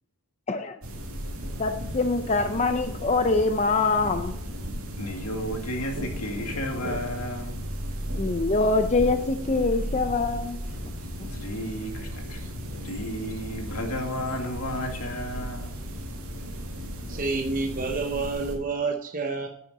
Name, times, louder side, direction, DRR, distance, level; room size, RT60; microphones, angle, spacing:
sound 1, 0.8-18.6, equal, 70° right, 2.4 m, -35 dB
voice 1, 1.6-4.4 8.2-10.6 11.2-11.3, left 3 dB, 30° left, 7 dB, 0.6 m, -24 dB
voice 2, 5.0-7.5 11.3-12.4 12.8-15.8, equal, 85° left, 3 dB, 2.2 m, -33 dB
voice 3, 17.1-19.5, right 4 dB, 35° right, 3 dB, 0.8 m, -29 dB
10.5 x 9.5 x 4.2 m, 0.73 s
head